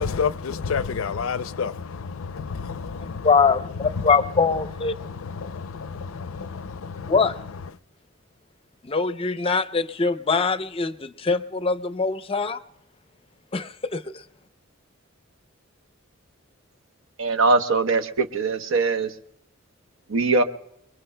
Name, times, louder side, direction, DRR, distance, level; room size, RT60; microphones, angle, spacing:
voice 1, 0.0-3.3 4.0-4.1 5.0-7.1, left 5 dB, 75° left, 0.5 m, -30 dB
voice 2, 3.2-4.9 7.1-7.4 8.8-12.6 13.5-14.2, left 4 dB, 25° left, 0.5 m, -23 dB
voice 3, 17.2-19.1 20.1-20.4, right 3 dB, 70° right, 0.9 m, -21 dB
28.0 x 21.5 x 2.2 m
head